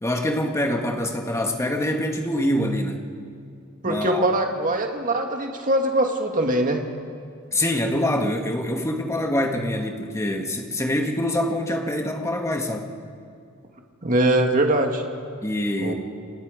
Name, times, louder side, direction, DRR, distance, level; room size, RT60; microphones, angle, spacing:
voice 1, 0.0-3.1 3.8-4.3 7.5-12.9 15.4-15.9, left 1 dB, 15° left, 3 dB, 1.9 m, -25 dB
voice 2, 3.8-6.8 14.0-15.0 15.8-15.9, right 1 dB, 40° right, 3 dB, 2.1 m, -22 dB
29.5 x 27.0 x 5.2 m, 2.4 s
head